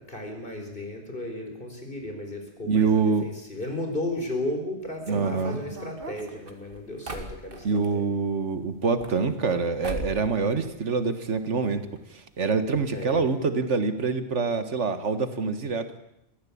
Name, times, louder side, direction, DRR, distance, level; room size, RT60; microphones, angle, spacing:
voice 1, 0.0-8.1 12.9-13.2, left 1 dB, 50° left, 4 dB, 4.6 m, -34 dB
voice 2, 2.6-3.3 5.1-5.6 7.6-11.8 12.1-15.9, right 4 dB, 85° right, 10 dB, 1.8 m, -25 dB
sound 1, 5.0-7.9 8.8-9.6 9.8-10.3 10.6-11.4 11.7-11.8 12.0-12.1 12.7-12.9 13.1-13.3, right 1 dB, 50° right, 2.4 m, -38 dB
22.5 x 15.5 x 8.6 m, 0.82 s
omnidirectional pair, 1.2 m